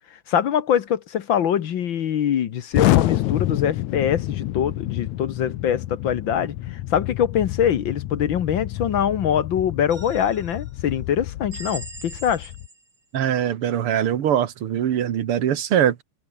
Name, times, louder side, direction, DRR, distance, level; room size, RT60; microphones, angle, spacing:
voice 1, 0.3-12.5, left 9 dB, 55° left, 1.4 m, -23 dB
Explosion, 2.7-12.7, left 15 dB, 75° left, 2.2 m, -28 dB
sound 1, 9.9-10.7 11.5-13.0, right 2 dB, 35° right, 7.0 m, -40 dB
voice 2, 13.1-16.0, right 10 dB, 55° right, 2.0 m, -22 dB
omnidirectional pair, 3.4 m